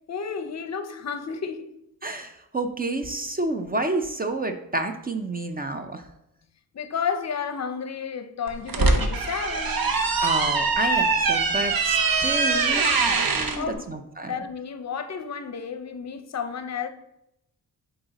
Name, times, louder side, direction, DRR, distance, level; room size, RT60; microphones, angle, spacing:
voice 1, 0.1-1.6 6.7-9.8 13.6-13.9 14.3-16.9, left 6 dB, 50° left, 0.6 m, -31 dB
voice 2, 2.0-6.0 10.2-13.0 13.3-14.4, right 2 dB, 25° right, 0.5 m, -29 dB
sound 1, 8.5-13.6, right 4 dB, 75° right, 0.8 m, -23 dB
7.6 x 4.0 x 4.0 m
wide cardioid pair, 140°, 36 cm